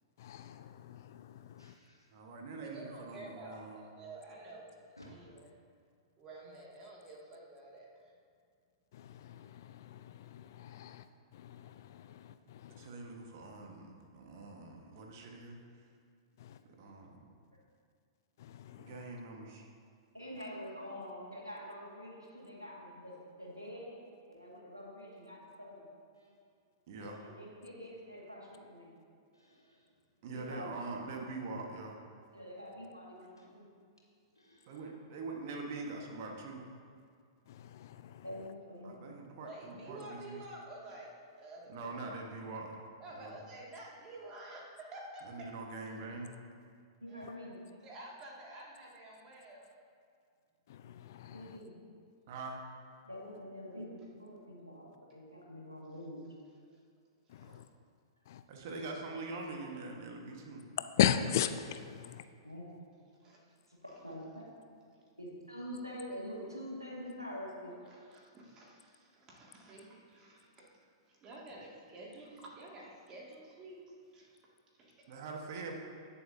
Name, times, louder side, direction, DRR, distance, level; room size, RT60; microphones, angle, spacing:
voice 1, 0.2-1.8 8.9-12.9 16.4-16.6 18.4-19.0 27.0-27.1 37.5-38.5 47.2-47.3 50.7-51.6 57.3-57.7 58.2-58.4 60.8-62.3, left 10 dB, 50° left, 11 dB, 0.4 m, -37 dB
voice 2, 1.2-2.2 5.0-5.1 26.1-26.4 27.0-27.2 29.3-29.9 33.4-33.5 34.3-34.9 43.1-43.3 58.2-58.3, equal, 85° left, -3 dB, 2.0 m, -61 dB
voice 3, 2.1-3.9 12.8-15.6 16.8-17.3 18.8-19.7 26.9-27.2 30.2-32.0 34.7-36.6 38.8-40.4 41.7-42.8 43.1-43.3 45.2-46.3 52.3-52.6 57.4-57.6 58.5-60.7 75.1-75.8, right 3 dB, 45° right, 1 dB, 1.5 m, -43 dB
voice 4, 2.6-4.7 5.1-5.5 6.2-8.1 39.4-41.1 41.4-42.1 43.0-45.2 47.1-47.4 47.8-49.7 57.3-57.6 63.2-63.5 64.9-65.0 67.9-70.7 71.1-74.3 74.8-75.0, right 2 dB, 25° right, -3 dB, 2.3 m, -50 dB
voice 5, 20.1-24.0 24.3-25.9 27.2-28.9 30.2-30.7 32.3-33.7 38.2-39.0 47.0-47.6 51.3-51.8 53.0-56.2 62.4-62.6 63.7-64.4 65.2-67.8, equal, 90° right, -3 dB, 2.1 m, -46 dB
18.0 x 7.1 x 2.8 m, 2.2 s
figure-of-eight pair, 105°, 2 cm